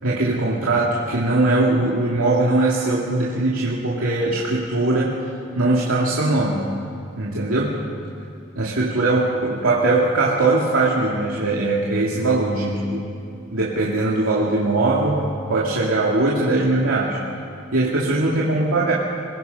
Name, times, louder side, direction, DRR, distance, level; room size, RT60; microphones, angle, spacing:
voice 1, 0.0-5.2 5.6-6.7 7.2-7.9 8.6-13.1 13.5-17.2 17.7-18.9, right 2 dB, 85° right, -5 dB, 2.5 m, -20 dB
25.5 x 21.5 x 5.5 m, 2.6 s
head